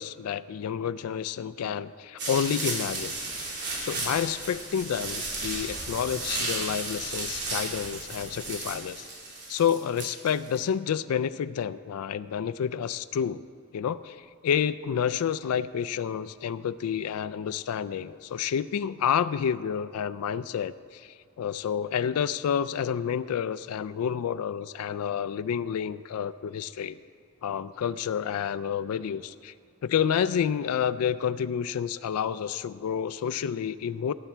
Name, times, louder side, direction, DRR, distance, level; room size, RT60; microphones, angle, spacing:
voice 1, 0.0-3.2 3.8-9.1 9.5-13.4 13.7-27.0 27.4-29.5 29.8-34.1, left 8 dB, 85° left, 15 dB, 0.3 m, -29 dB
sound 1, 2.2-10.6, right 2 dB, 55° right, 3.1 m, -34 dB
18.0 x 8.3 x 4.4 m, 2.1 s
head